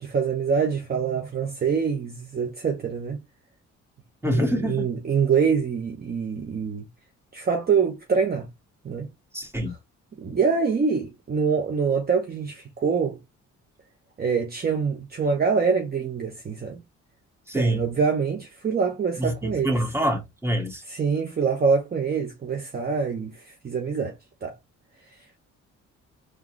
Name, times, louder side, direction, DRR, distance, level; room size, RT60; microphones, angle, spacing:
voice 1, 0.0-3.2 4.2-6.8 7.3-8.5 8.8-9.1 9.7-9.8 10.2-13.2 14.2-16.8 17.5-19.8 20.9-24.5, right 5 dB, 30° right, 0.8 m, -25 dB
voice 2, 4.2-4.8 9.3-9.7 17.5-17.9 19.2-20.8, equal, 10° right, 1.6 m, -25 dB
3.8 x 2.3 x 3.0 m
cardioid pair, 90°, 30 cm